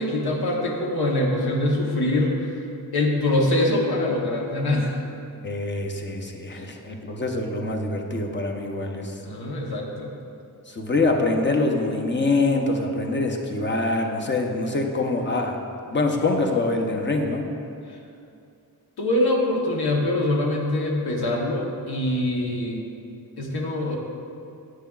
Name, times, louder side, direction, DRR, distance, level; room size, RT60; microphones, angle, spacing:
voice 1, 0.0-2.6 2.9-5.0 6.5-6.6 9.2-10.1 17.9-18.0 19.0-22.8 23.4-24.0, left 1 dB, 75° left, -1 dB, 1.0 m, -24 dB
voice 2, 5.4-9.2 10.7-15.6 15.9-17.5, left 2 dB, 30° left, 2 dB, 0.7 m, -24 dB
11.0 x 7.4 x 2.3 m, 2.5 s
wide cardioid pair, 130°, 39 cm